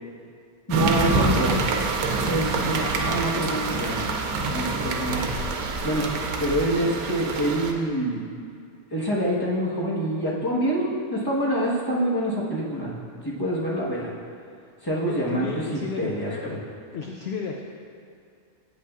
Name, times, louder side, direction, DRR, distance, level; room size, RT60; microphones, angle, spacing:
voice 1, 0.7-1.6 2.2-4.1 4.5-5.2 5.8-6.0 6.4-8.3 8.9-12.9 13.2-14.1 14.8-15.5 16.0-16.3, right 1 dB, 15° left, -6 dB, 1.1 m, -26 dB
sound 1, 0.7-7.7, right 3 dB, 85° right, 1.1 m, -26 dB
voice 2, 15.0-16.6 16.9-17.6, left 5 dB, 65° left, 1 dB, 0.6 m, -33 dB
8.5 x 8.3 x 2.4 m, 2.4 s
omnidirectional pair, 1.5 m